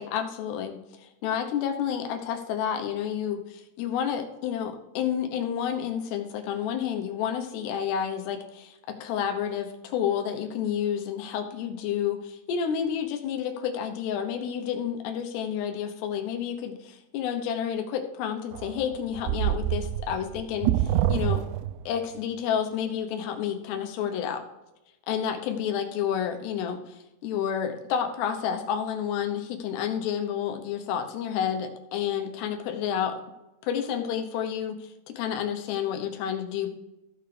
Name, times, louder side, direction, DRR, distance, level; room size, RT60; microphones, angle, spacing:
voice 1, 0.0-21.4 21.9-24.4 25.1-33.2 33.6-36.7, left 8 dB, 85° left, 5 dB, 3.1 m, -30 dB
sound 1, 18.5-22.0, right 12 dB, 85° right, 2.6 m, -26 dB
15.0 x 6.9 x 3.3 m, 0.98 s
omnidirectional pair, 4.7 m